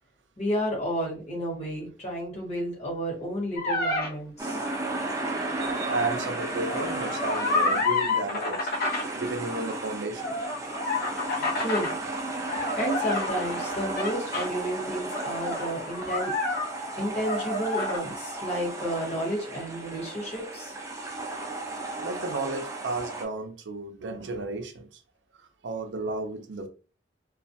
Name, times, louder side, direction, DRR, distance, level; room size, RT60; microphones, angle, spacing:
voice 1, 0.4-4.6 11.6-11.9 12.7-16.3 17.0-20.7, equal, 35° left, 1.1 m, -31 dB
sound 1, 3.6-4.1 6.5-9.1 10.1-11.9 12.5-14.5 15.1-17.0 17.2-18.0, left 3 dB, 55° left, 0.6 m, -29 dB
sound 2, 4.4-23.2, right 2 dB, 15° right, 0.4 m, -34 dB
voice 2, 5.6-8.7 9.1-10.4 11.4-11.6 12.6-12.8 22.0-24.9 25.6-26.7, right 2 dB, 80° right, 0.5 m, -33 dB
2.3 x 2.1 x 2.7 m
head